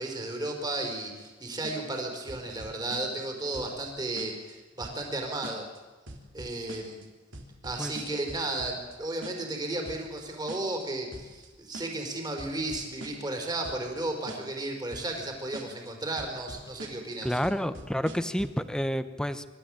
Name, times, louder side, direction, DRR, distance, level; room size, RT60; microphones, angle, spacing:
voice 1, 0.0-5.7 6.3-7.0 7.6-17.4, right 2 dB, 20° right, 3 dB, 4.3 m, -34 dB
sound 1, 1.6-2.0 2.3-3.3 3.5-3.9 4.2-4.5 4.8-5.2 5.4-5.8 6.1-7.1 7.3-9.0 9.2-9.6 9.9-10.2 10.5-10.8 11.1-11.5 11.7-12.1 12.4-13.4 13.6-14.0 14.3-14.6 14.9-15.3 15.5-15.9 16.2-17.2 17.4-18.6, right 1 dB, 75° right, 3.4 m, -43 dB
voice 2, 17.2-19.5, equal, 5° left, 12 dB, 0.9 m, -29 dB
26.0 x 13.0 x 8.9 m, 1.3 s
head